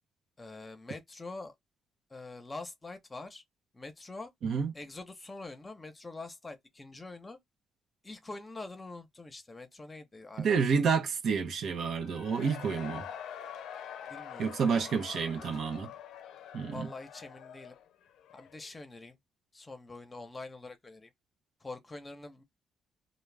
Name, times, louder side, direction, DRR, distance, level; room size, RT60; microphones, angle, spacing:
voice 1, 0.4-1.5 2.1-3.4 3.7-4.3 4.7-7.4 8.0-10.5 14.1-15.2 16.7-17.7 18.3-19.2 19.5-21.1 21.6-22.4, left 3 dB, 20° left, 0.8 m, -45 dB
voice 2, 10.4-13.1 14.4-15.9 16.5-16.9, right 6 dB, 65° right, 0.7 m, -29 dB
Cheering / Crowd, 11.9-18.7, left 9 dB, 80° left, 0.4 m, -45 dB
2.4 x 2.1 x 3.3 m
cardioid pair, 90°, 0 cm